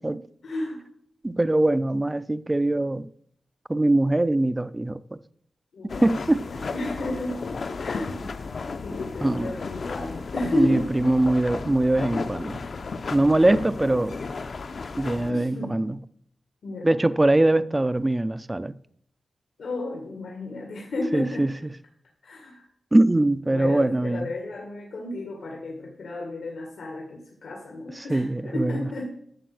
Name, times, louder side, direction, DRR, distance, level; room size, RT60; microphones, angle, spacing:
voice 1, 0.4-0.8 5.7-6.1 6.5-7.4 7.8-8.2 8.8-10.9 13.3-13.7 15.3-15.8 16.6-17.0 19.6-21.5 22.2-22.6 23.5-29.1, left 2 dB, 80° left, 1.9 m, -33 dB
voice 2, 1.2-3.1 3.7-5.2 6.0-6.5 9.2-9.5 10.5-12.6 13.1-14.2 15.0-16.0 16.8-18.7 21.1-21.5 22.9-24.3 28.0-28.9, right 1 dB, 15° right, 0.3 m, -22 dB
sound 1, 5.9-15.3, left 4 dB, 55° left, 0.7 m, -34 dB
11.5 x 7.2 x 6.0 m
wide cardioid pair, 130°, 0 cm